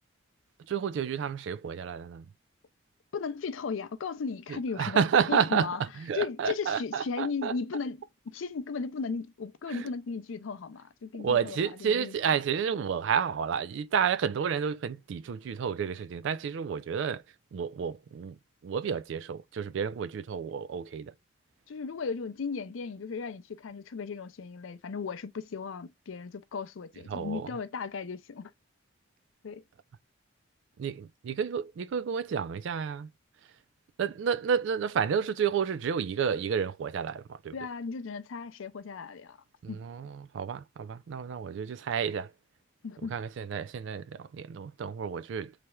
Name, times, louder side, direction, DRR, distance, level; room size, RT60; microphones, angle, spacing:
voice 1, 0.7-2.3 4.5-7.5 9.7-9.9 11.2-17.2 17.5-18.4 18.6-21.1 27.1-27.5 30.8-33.1 34.0-37.6 39.6-42.3 43.1-45.5, right 7 dB, 65° right, 0.3 m, -30 dB
voice 2, 3.1-5.8 6.1-12.1 21.7-28.5 29.4-29.6 37.5-39.4 39.7-39.8 42.8-43.1, left 5 dB, 75° left, 0.5 m, -36 dB
3.3 x 2.9 x 2.2 m
head